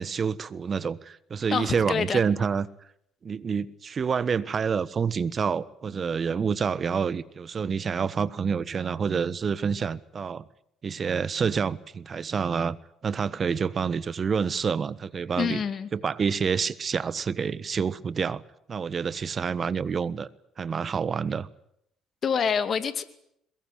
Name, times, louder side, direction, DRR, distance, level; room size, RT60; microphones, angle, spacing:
voice 1, 0.0-2.7 3.2-10.5 10.8-12.8 13.0-15.6 15.9-18.4 18.7-20.3 20.6-21.5, right 6 dB, 45° right, 1.3 m, -28 dB
voice 2, 1.5-2.2 15.4-15.9 22.2-23.0, left 6 dB, 50° left, 2.3 m, -26 dB
22.5 x 21.5 x 9.1 m
hypercardioid pair, 55°, 0 cm